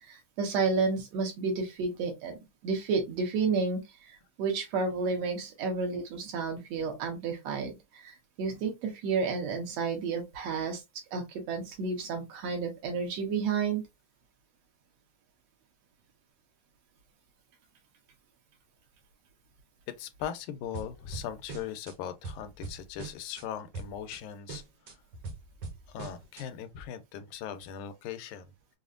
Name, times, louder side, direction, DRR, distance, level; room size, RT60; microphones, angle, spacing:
voice 1, 0.0-2.4 2.6-3.8 4.4-10.8 11.1-13.8, right 4 dB, 65° right, 2.1 m, -31 dB
voice 2, 20.0-24.6 25.9-28.5, left 9 dB, 85° left, 2.1 m, -39 dB
sound 1, 20.7-21.9 22.2-23.4 23.7-24.2 24.5-26.4, right 4 dB, 90° right, 0.9 m, -42 dB
5.5 x 2.1 x 2.4 m
omnidirectional pair, 3.4 m